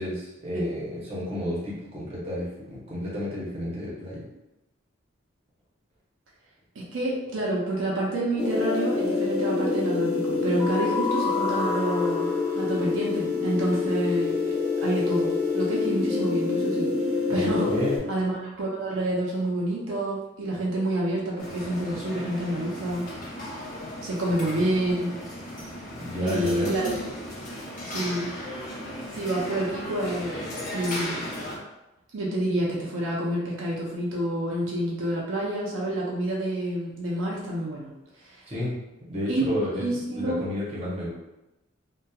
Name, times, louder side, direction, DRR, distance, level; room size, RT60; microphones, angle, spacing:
voice 1, 0.0-4.2 17.3-18.0 24.4-24.6 26.0-26.7 38.5-38.7 39.1-39.9 40.1-41.1, left 1 dB, 30° right, -7 dB, 0.8 m, -31 dB
voice 2, 6.8-16.9 17.3-17.7 18.1-23.1 24.0-25.1 26.2-26.9 27.8-28.3 29.1-31.3 32.1-37.9 38.2-38.4 39.3-39.4 39.8-40.4, right 1 dB, 75° right, -5 dB, 0.6 m, -28 dB
sound 1, 8.4-18.0, left 4 dB, 5° right, 0.4 m, -26 dB
sound 2, 21.4-31.6, equal, 40° left, 0.7 m, -36 dB
2.8 x 2.2 x 2.3 m, 0.95 s
head